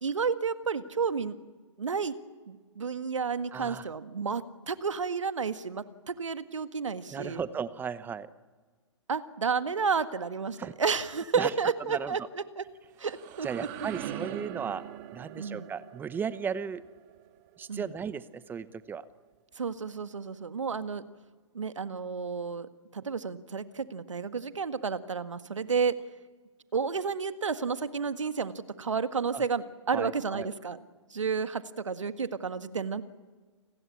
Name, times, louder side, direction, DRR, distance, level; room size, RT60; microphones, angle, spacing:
voice 1, 0.0-1.4 1.8-2.2 2.5-7.4 9.1-12.2 12.6-12.7 13.0-13.7 15.4-15.7 17.7-17.9 19.6-21.0 21.5-26.0 26.7-30.8 31.1-33.0, right 5 dB, 75° right, 12 dB, 1.7 m, -31 dB
voice 2, 3.5-3.9 7.1-8.3 10.6-10.7 11.4-11.5 11.9-12.2 13.4-14.8 15.1-16.8 17.6-19.0 29.3-29.4 29.9-30.5, right 6 dB, 10° right, 16 dB, 0.9 m, -35 dB
sound 1, 12.7-18.4, right 12 dB, 35° right, 2.9 m, -43 dB
29.5 x 20.5 x 8.5 m, 1.4 s
figure-of-eight pair, 125°, 16 cm